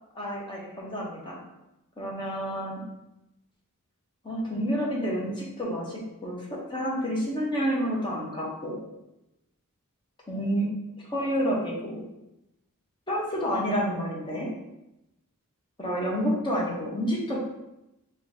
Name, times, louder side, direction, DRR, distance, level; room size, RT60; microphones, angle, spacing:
voice 1, 0.1-1.4 2.0-2.8 4.2-8.8 10.3-10.8 11.1-12.0 13.1-14.5 15.8-17.4, equal, 20° left, -4 dB, 1.0 m, -29 dB
3.8 x 2.8 x 3.6 m, 0.90 s
head